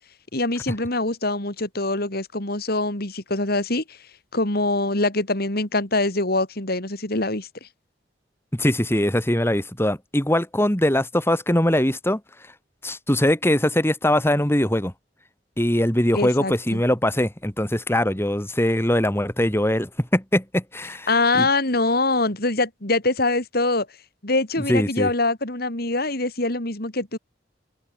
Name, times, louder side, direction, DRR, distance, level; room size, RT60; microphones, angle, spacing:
voice 1, 0.3-4.0 4.3-7.5 16.1-16.8 21.1-23.9 24.2-27.2, left 2 dB, 60° left, 4.5 m, -24 dB
voice 2, 8.5-12.2 12.8-14.9 15.6-21.1 21.4-21.5 24.7-25.1, left 1 dB, 15° left, 3.2 m, -21 dB
head